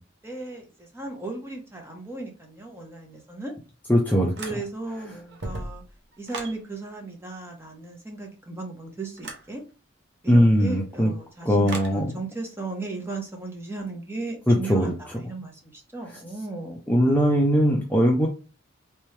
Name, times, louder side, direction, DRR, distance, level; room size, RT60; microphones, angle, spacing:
voice 1, 0.2-3.5 4.4-5.8 6.2-9.6 10.2-16.8, right 2 dB, 10° right, 0.9 m, -36 dB
voice 2, 3.9-4.3 10.3-11.1 11.5-12.1 14.5-14.9 16.9-18.3, equal, 10° left, 0.5 m, -20 dB
sound 1, 4.4-4.9 5.3-6.6 9.2-9.5 11.7-12.0, right 2 dB, 55° right, 0.8 m, -36 dB
3.4 x 3.0 x 3.2 m
head